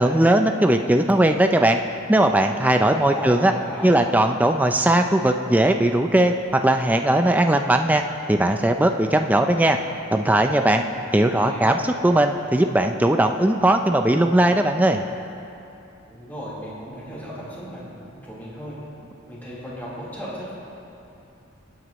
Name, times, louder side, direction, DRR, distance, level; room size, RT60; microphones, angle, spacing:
voice 1, 0.0-1.8 2.1-3.5 3.8-6.3 6.6-8.0 8.3-9.8 10.1-10.8 11.1-11.8 12.0-15.0, right 1 dB, 10° right, 5 dB, 0.4 m, -18 dB
voice 2, 3.0-3.9 10.8-11.8 16.1-18.8 19.3-20.5, equal, 10° left, -9 dB, 3.7 m, -36 dB
27.0 x 9.4 x 3.0 m, 2.8 s
head